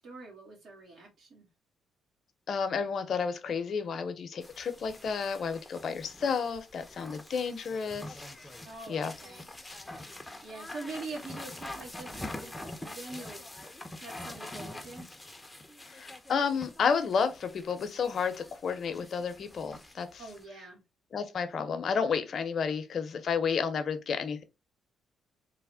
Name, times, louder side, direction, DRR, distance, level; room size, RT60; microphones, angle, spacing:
voice 1, 0.0-1.5 8.6-9.5 10.4-13.4 14.0-15.1 20.2-20.8, right 3 dB, 65° right, 1.5 m, -44 dB
voice 2, 2.5-8.2 8.9-9.1 15.9-20.2 21.1-24.4, left 6 dB, 55° left, 0.6 m, -31 dB
sound 1, 4.4-20.4, left 1 dB, 10° left, 0.6 m, -45 dB
3.4 x 2.1 x 3.4 m
cardioid pair, 90°, 0 cm